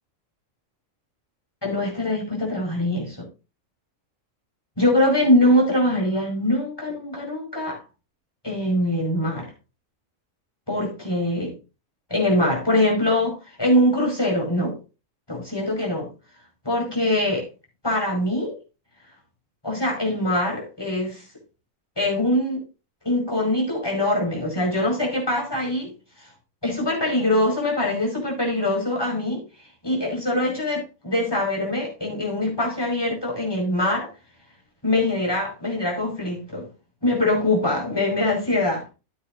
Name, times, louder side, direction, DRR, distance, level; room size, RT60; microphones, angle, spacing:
voice 1, 1.6-3.3 4.8-7.8 8.4-9.5 10.7-11.5 12.1-14.8 15.3-16.1 16.7-17.5 17.8-18.5 19.6-21.2 22.0-22.6 23.0-25.9 26.2-26.3 26.6-29.4 29.8-34.1 34.8-36.7 37.0-38.8, left 1 dB, 15° left, 5.6 m, -23 dB
14.0 x 9.6 x 2.6 m
omnidirectional pair, 1.4 m